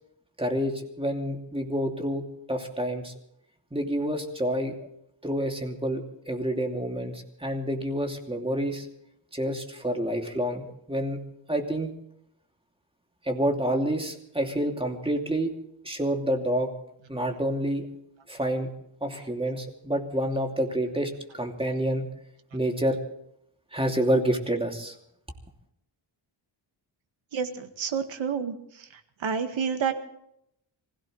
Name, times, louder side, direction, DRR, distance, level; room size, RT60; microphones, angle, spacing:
voice 1, 0.4-3.1 3.7-4.9 5.2-8.9 9.3-11.2 11.5-11.9 13.2-15.5 15.8-16.7 17.1-17.9 18.3-18.7 19.0-22.1 22.5-23.0 23.7-24.9, equal, 10° right, 3 dB, 2.8 m, -28 dB
voice 2, 27.3-28.6 29.2-29.9, right 6 dB, 75° right, 7 dB, 1.9 m, -28 dB
26.0 x 16.5 x 3.3 m, 0.75 s
cardioid pair, 100°, 46 cm